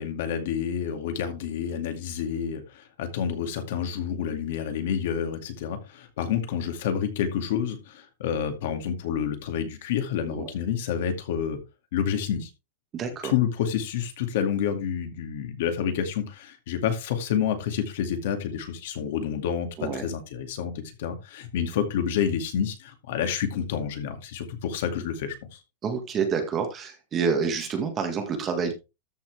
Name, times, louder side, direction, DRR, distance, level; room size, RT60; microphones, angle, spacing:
voice 1, 0.0-11.6 11.9-12.5 13.2-25.6, left 8 dB, 60° left, 7 dB, 2.2 m, -29 dB
voice 2, 12.9-13.3 19.8-20.1 25.8-28.7, right 6 dB, 20° right, 5 dB, 1.7 m, -28 dB
13.5 x 5.8 x 3.3 m, 0.27 s
supercardioid pair, 175°, 0 cm